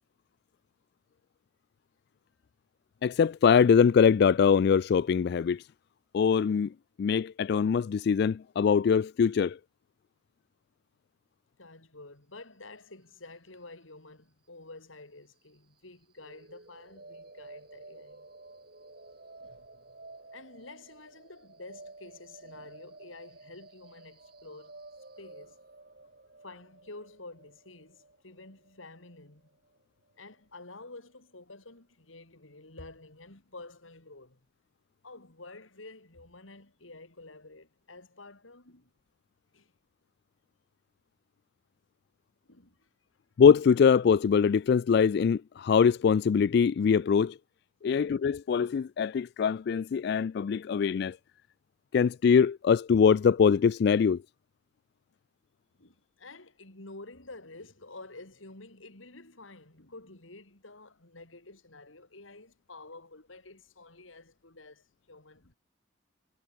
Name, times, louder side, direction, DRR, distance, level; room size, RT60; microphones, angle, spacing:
voice 1, 3.0-5.6 6.1-6.7 7.0-9.6 43.4-47.4 47.8-51.2 51.9-54.2, left 6 dB, 55° left, 0.3 m, -23 dB
voice 2, 11.6-18.3 19.4-20.0 20.3-24.8 25.2-25.6 26.4-29.5 30.2-34.4 35.0-38.9 39.5-39.7 42.5-42.9 47.8-48.2 55.8-65.5, left 2 dB, 85° left, 3.9 m, -50 dB
sound 1, 16.2-30.2, right 2 dB, 50° right, 4.2 m, -52 dB
head